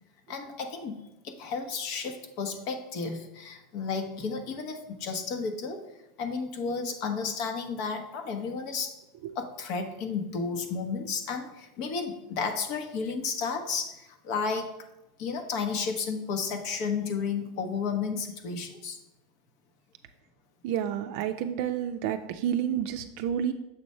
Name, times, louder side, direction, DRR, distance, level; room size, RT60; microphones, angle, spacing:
voice 1, 0.3-1.0 1.2-5.8 6.2-9.0 9.3-14.7 15.2-19.0, left 5 dB, 60° left, 6 dB, 1.0 m, -32 dB
voice 2, 20.6-23.5, right 9 dB, 65° right, 7 dB, 0.4 m, -30 dB
6.9 x 3.2 x 5.5 m, 0.93 s
supercardioid pair, 120°, 0 cm